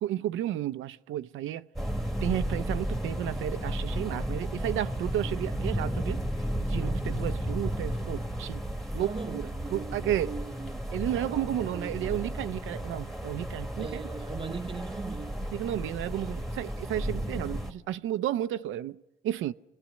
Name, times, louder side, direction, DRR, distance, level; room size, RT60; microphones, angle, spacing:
voice 1, 0.0-1.7 2.2-6.2 6.6-8.6 8.9-10.3 10.9-14.0 15.5-19.5, right 12 dB, 85° right, 0.6 m, -32 dB
sound 1, 1.8-17.7, equal, ahead, 1.6 m, -33 dB
voice 2, 8.9-10.9 11.7-12.2 13.8-15.5, right 4 dB, 25° right, 0.8 m, -40 dB
26.5 x 18.5 x 6.4 m
cardioid pair, 90°, 20 cm